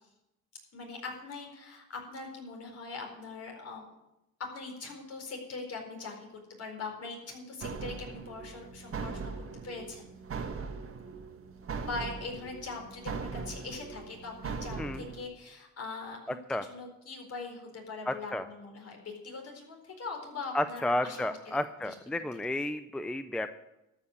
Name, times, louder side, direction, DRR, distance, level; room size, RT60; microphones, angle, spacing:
voice 1, 0.7-3.8 4.4-6.3 6.6-9.3 9.6-10.1 11.8-21.6 21.8-21.9 22.2-22.3, left 3 dB, 55° left, 1 dB, 4.3 m, -41 dB
sound 1, 7.6-15.2, right 5 dB, 45° right, 1.6 m, -40 dB
voice 2, 18.1-18.4 20.5-23.5, left 1 dB, 5° left, 11 dB, 0.5 m, -32 dB
13.0 x 5.7 x 9.6 m, 0.92 s
cardioid pair, 90°, 30 cm